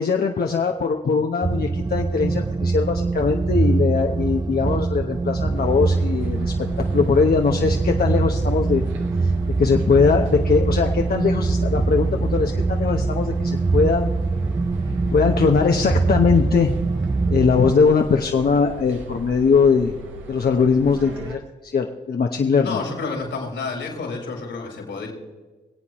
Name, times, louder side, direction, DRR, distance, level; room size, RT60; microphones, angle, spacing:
voice 1, 0.0-8.8 9.2-9.3 9.6-14.1 15.1-16.7 17.3-19.9 20.3-22.8, left 5 dB, 55° left, 3 dB, 1.0 m, -20 dB
sound 1, 1.4-17.7, right 3 dB, 20° right, 0.5 m, -23 dB
sound 2, 5.5-21.4, right 1 dB, 85° right, 1.3 m, -38 dB
voice 2, 22.6-25.1, left 4 dB, 80° left, 0 dB, 4.4 m, -29 dB
25.0 x 8.4 x 3.1 m, 1.3 s
supercardioid pair, 45°, 19 cm